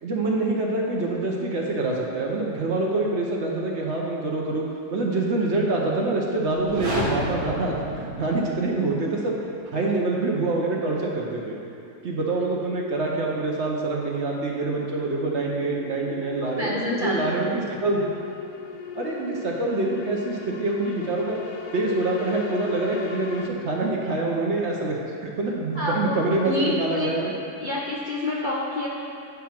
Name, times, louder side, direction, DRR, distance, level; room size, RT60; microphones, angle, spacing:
voice 1, 0.0-4.6 4.9-9.4 9.7-11.6 12.0-18.0 19.0-21.4 21.7-27.3, right 2 dB, 55° right, -2 dB, 0.9 m, -25 dB
sound 1, 6.6-8.7, equal, 75° right, 1.9 m, -31 dB
sound 2, 14.4-23.5, left 6 dB, 70° left, 0.9 m, -39 dB
voice 2, 16.4-17.3 25.7-26.2 26.4-27.1 27.6-28.9, left 2 dB, 50° left, -5 dB, 0.6 m, -28 dB
8.8 x 3.7 x 5.8 m, 2.5 s
omnidirectional pair, 1.7 m